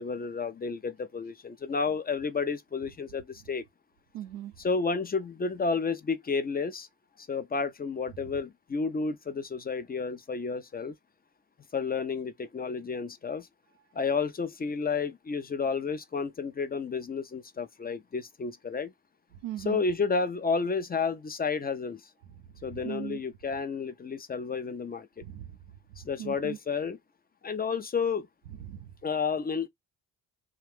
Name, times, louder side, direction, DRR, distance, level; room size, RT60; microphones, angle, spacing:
voice 1, 0.0-3.6 4.6-6.9 7.2-10.9 11.7-13.5 13.9-18.9 19.6-22.1 22.6-25.2 26.0-27.0 27.4-28.3 29.0-29.7, left 5 dB, 20° left, 0.5 m, -31 dB
voice 2, 4.1-4.5 19.4-19.8 22.4-22.5 22.7-23.2 25.2-25.6 26.2-26.6 28.6-28.9, right 12 dB, 85° right, 0.6 m, -39 dB
2.3 x 2.3 x 3.4 m
hypercardioid pair, 45°, 44 cm